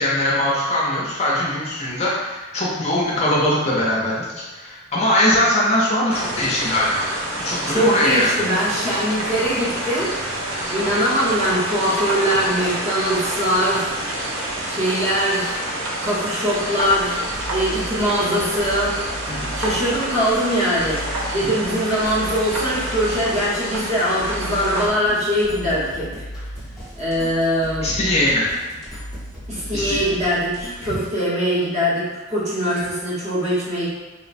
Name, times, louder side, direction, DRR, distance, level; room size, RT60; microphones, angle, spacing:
voice 1, 0.0-7.1 7.4-8.3 19.3-19.5 21.4-21.5 27.8-28.5 29.7-30.0, left 1 dB, 30° left, -5 dB, 0.4 m, -21 dB
sound 1, 6.1-24.9, right 1 dB, 80° right, 0.5 m, -28 dB
voice 2, 7.7-13.9 14.7-15.6 16.0-17.3 17.5-19.0 19.5-21.1 21.3-26.1 27.0-27.9 29.5-33.9, equal, 35° right, -8 dB, 0.7 m, -22 dB
sound 2, 17.3-31.1, equal, ahead, 0.8 m, -36 dB
3.0 x 2.0 x 2.5 m, 1.2 s
head